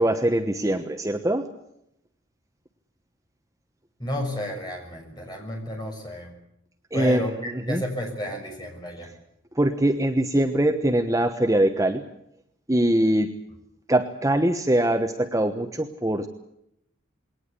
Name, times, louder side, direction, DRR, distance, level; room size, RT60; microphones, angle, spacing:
voice 1, 0.0-1.5 6.9-7.8 9.5-12.1 12.7-13.4 13.9-16.3, right 1 dB, 15° right, 5 dB, 1.1 m, -23 dB
voice 2, 4.0-6.4 6.9-9.1, left 1 dB, 20° left, 2 dB, 6.3 m, -32 dB
22.0 x 18.5 x 8.4 m, 0.79 s
head